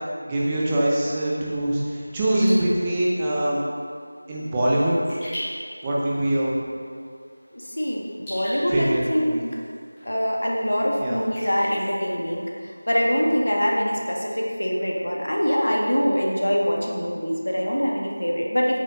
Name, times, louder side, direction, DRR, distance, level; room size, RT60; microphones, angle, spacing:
voice 1, 0.2-3.6 4.3-4.9 5.8-6.5 8.7-9.4 11.0-11.2, right 1 dB, 10° right, -6 dB, 0.7 m, -23 dB
Raindrop / Drip, 2.2-13.0, equal, 10° left, 1.8 m, -42 dB
voice 2, 7.5-9.4 10.1-18.8, equal, 85° left, -2 dB, 1.7 m, -24 dB
8.8 x 5.4 x 5.3 m, 2.2 s
figure-of-eight pair, 175°, 0 cm